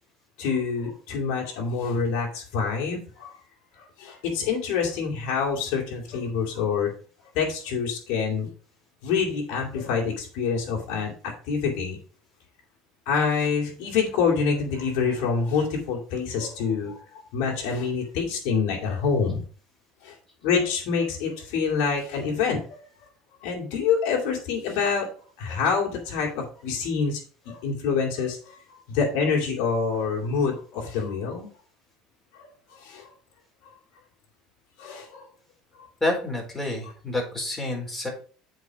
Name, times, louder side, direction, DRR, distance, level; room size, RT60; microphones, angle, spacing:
voice 1, 0.4-3.3 3.8-6.9 7.3-8.5 9.0-12.0 13.1-17.0 17.3-19.4 20.0-20.1 20.4-22.8 23.4-25.1 25.4-27.2 27.4-28.6 28.9-31.5 32.7-33.1 34.8-35.3, left 5 dB, 75° left, -1 dB, 2.7 m, -26 dB
voice 2, 36.0-38.1, left 2 dB, 15° left, -1 dB, 4.3 m, -28 dB
8.3 x 4.8 x 5.1 m, 0.41 s
supercardioid pair, 110°, 2 cm